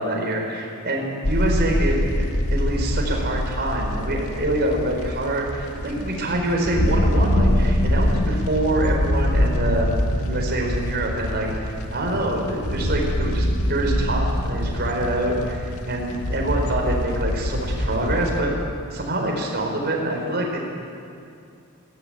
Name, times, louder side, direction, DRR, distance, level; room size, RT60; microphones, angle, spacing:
voice 1, 0.0-2.0 2.5-18.6 18.9-20.6, right 1 dB, 50° right, 0 dB, 4.3 m, -25 dB
sound 1, 1.2-18.4, equal, 75° left, 1.9 m, -24 dB
19.5 x 17.0 x 8.9 m, 2.4 s
head